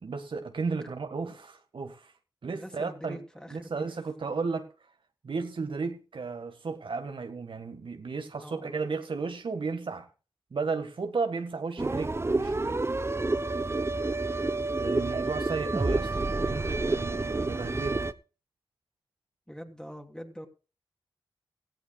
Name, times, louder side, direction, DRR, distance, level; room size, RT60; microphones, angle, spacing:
voice 1, 0.0-2.1 2.4-3.2 3.5-4.7 5.2-10.1 10.5-12.8 14.8-16.1 16.5-18.1, right 4 dB, 65° right, 1.7 m, -34 dB
voice 2, 2.5-3.9 8.3-8.8 19.5-20.5, equal, 10° left, 3.1 m, -44 dB
sound 1, 11.8-18.1, right 2 dB, 30° right, 0.9 m, -29 dB
17.0 x 15.0 x 2.4 m
cardioid pair, 45°, 9 cm